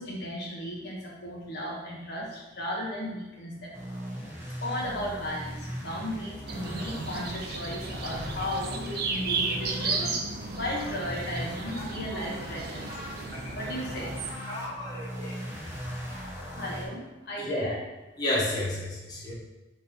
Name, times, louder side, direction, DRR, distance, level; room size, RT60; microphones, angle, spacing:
voice 1, 0.0-3.7 4.6-12.8 13.5-14.1 15.8-16.0 16.6-17.8, left 1 dB, 60° left, -4 dB, 1.1 m, -35 dB
sound 1, 3.7-10.1 10.4-16.9, equal, 15° right, 1.1 m, -39 dB
sound 2, 6.5-14.3, right 3 dB, 55° right, 0.6 m, -34 dB
voice 2, 14.4-15.3 17.4-17.6 18.2-19.3, left 1 dB, 20° left, -6 dB, 1.6 m, -32 dB
4.2 x 4.1 x 5.4 m, 1.1 s
head